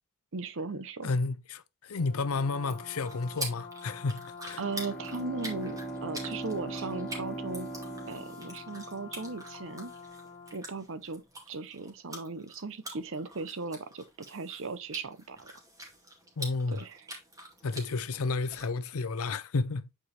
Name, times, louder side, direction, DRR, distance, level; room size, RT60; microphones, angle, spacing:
voice 1, 0.3-1.1 4.6-7.7 8.1-9.9 10.5-15.5 16.7-17.1, right 3 dB, 60° right, 0.8 m, -37 dB
voice 2, 1.0-4.6 16.4-16.8 17.6-19.9, left 3 dB, 70° left, 0.6 m, -31 dB
Brass instrument, 1.9-10.7, left 5 dB, 25° left, 1.1 m, -47 dB
sound 1, 2.5-18.7, right 1 dB, 15° right, 2.3 m, -46 dB
Bowed string instrument, 4.5-9.1, right 3 dB, ahead, 0.8 m, -40 dB
8.7 x 4.7 x 3.3 m
head